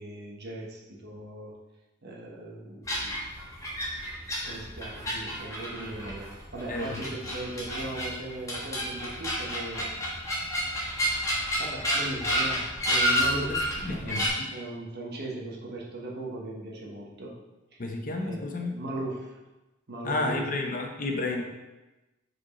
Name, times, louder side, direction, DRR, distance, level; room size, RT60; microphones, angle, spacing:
voice 1, 0.0-1.5 2.0-3.2 4.4-9.9 11.6-14.2 14.5-17.4 17.7-17.8 18.1-18.5 18.7-19.4 19.9-20.5 21.3-21.4, right 1 dB, 50° right, -2 dB, 1.2 m, -38 dB
sound 1, 2.8-14.3, equal, 15° left, 1.2 m, -30 dB
voice 2, 6.7-7.1 13.4-14.5 17.8-18.8 20.0-21.4, left 2 dB, 40° left, 2 dB, 0.8 m, -31 dB
5.1 x 4.8 x 4.1 m, 1.1 s
head